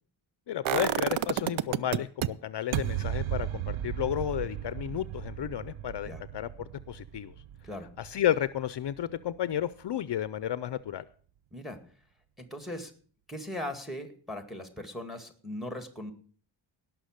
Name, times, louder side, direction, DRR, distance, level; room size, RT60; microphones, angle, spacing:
voice 1, 0.5-6.5 6.9-7.3 8.0-11.0, left 11 dB, 60° left, 16 dB, 0.6 m, -32 dB
sound 1, 0.7-2.3 2.7-8.6 8.9-9.0, right 11 dB, 85° right, 0.6 m, -32 dB
voice 2, 12.4-12.9 13.3-16.1, left 1 dB, ahead, 8 dB, 2.1 m, -39 dB
18.0 x 6.1 x 6.5 m, 0.43 s
wide cardioid pair, 120°, 46 cm